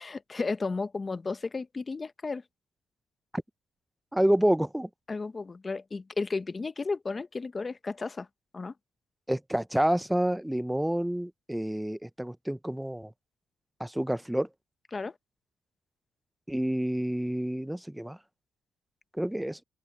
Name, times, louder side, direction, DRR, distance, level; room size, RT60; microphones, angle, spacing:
voice 1, 0.0-2.4 5.1-8.3 8.5-8.7 14.9-15.1, left 4 dB, 30° left, 1.0 m, -33 dB
voice 2, 4.1-4.9 9.3-13.1 13.8-14.5 16.5-18.2 19.1-19.6, right 1 dB, 5° right, 0.8 m, -28 dB
open air
cardioid pair, 90°, 0 cm